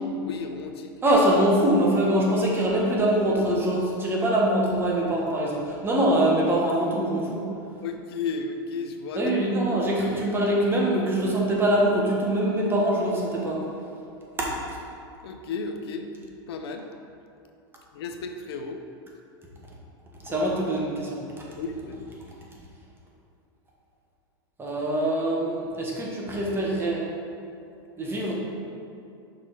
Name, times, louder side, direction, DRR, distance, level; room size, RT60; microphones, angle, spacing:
voice 1, 0.2-0.9 7.8-9.2 15.2-16.1 16.5-16.9 17.9-18.8 20.3-20.4 21.5-22.1, left 4 dB, 80° left, 5 dB, 0.6 m, -33 dB
voice 2, 1.0-7.5 9.2-13.6 14.4-14.8 20.2-21.2 24.6-27.0 28.0-28.3, right 1 dB, 15° right, -4 dB, 1.4 m, -23 dB
5.9 x 3.8 x 4.8 m, 2.6 s
hypercardioid pair, 115°, 13 cm